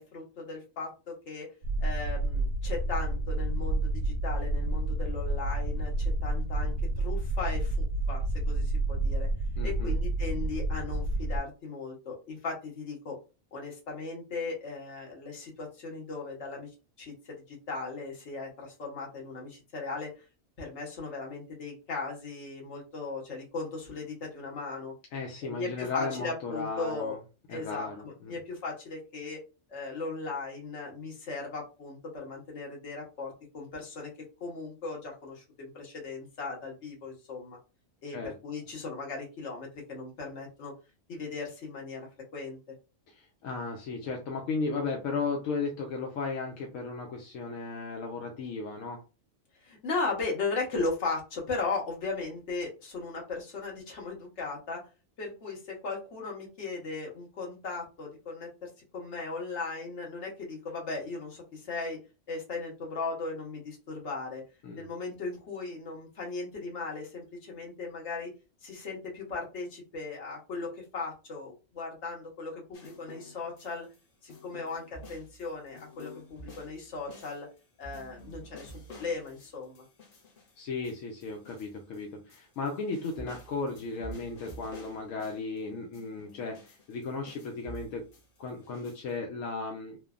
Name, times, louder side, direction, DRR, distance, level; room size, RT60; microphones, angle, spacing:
voice 1, 0.0-1.5 1.8-9.3 9.6-13.2 13.5-16.7 17.0-20.1 20.6-24.9 25.4-27.2 27.5-29.4 29.7-34.1 34.4-37.6 38.0-40.7 41.1-42.1 42.3-42.6 49.6-54.8 55.2-62.0 62.3-64.4 64.8-68.3 68.6-73.9 74.2-77.5 77.8-78.7 79.0-79.8, left 3 dB, 65° left, -1 dB, 1.3 m, -37 dB
sound 1, 1.6-11.4, right 2 dB, 70° right, 0.8 m, -29 dB
voice 2, 9.6-9.9 25.1-27.2 27.5-28.3 38.1-38.3 43.1-49.0 64.6-64.8 80.6-88.1 88.4-90.0, left 4 dB, 85° left, 1 dB, 1.0 m, -35 dB
sound 2, 72.7-74.0 74.3-82.0 82.3-85.6 85.9-89.1, right 1 dB, 50° left, 0.9 m, -49 dB
3.1 x 2.1 x 2.4 m, 0.30 s
omnidirectional pair, 1.3 m